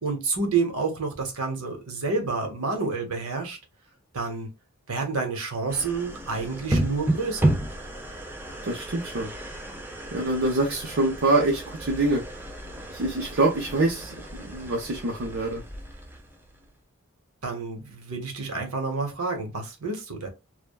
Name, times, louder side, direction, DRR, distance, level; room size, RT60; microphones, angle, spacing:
voice 1, 0.0-3.6 4.1-4.5 4.9-7.6 17.4-20.3, right 4 dB, 90° right, 1.0 m, -29 dB
sound 1, 5.7-16.8, right 1 dB, 10° right, 0.4 m, -32 dB
voice 2, 8.6-9.3 10.1-12.2 12.9-15.6, right 2 dB, 55° right, 0.6 m, -25 dB
3.2 x 2.1 x 2.2 m
head